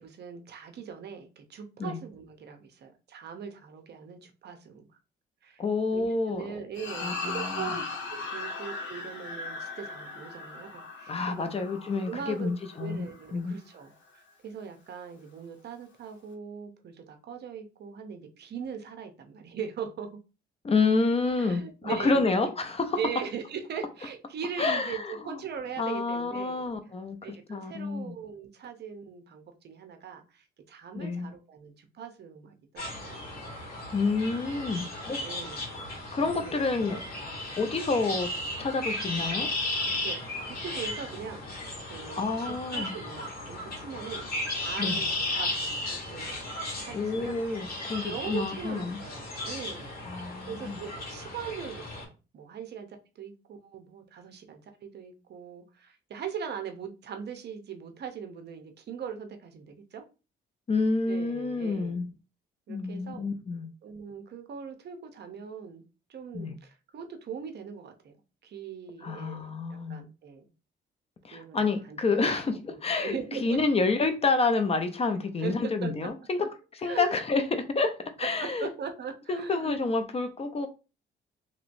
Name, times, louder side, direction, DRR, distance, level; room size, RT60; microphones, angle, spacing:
voice 1, 0.0-4.9 5.4-5.6 5.9-11.5 12.1-12.5 12.8-20.2 21.4-22.5 23.0-26.7 27.2-33.3 34.2-35.7 36.2-36.9 40.0-44.3 44.6-46.5 46.8-47.4 48.0-60.0 61.1-62.0 62.7-63.3 63.8-65.8 66.1-68.1 68.4-70.5 71.3-72.4 72.7-73.6 75.4-75.5 75.8-76.1 76.4-76.5 76.8-77.1 78.2-79.8, right 7 dB, 55° right, 0.7 m, -40 dB
voice 2, 5.6-6.5 7.0-7.7 11.1-13.1 13.3-13.6 20.6-23.0 24.6-25.4 25.8-28.2 30.9-31.3 33.9-35.2 36.1-37.0 37.6-38.3 38.6-39.5 42.1-42.9 44.8-45.0 46.9-49.0 50.0-50.8 60.7-62.1 62.7-63.7 66.3-66.6 69.0-70.0 71.2-76.4 76.7-78.7 79.3-80.7, left 3 dB, 30° left, 0.5 m, -29 dB
sound 1, 6.7-13.3, left 3 dB, 75° left, 0.9 m, -38 dB
sound 2, 32.8-52.0, left 2 dB, 50° left, 1.7 m, -35 dB
3.0 x 3.0 x 2.5 m
cardioid pair, 90°, 20 cm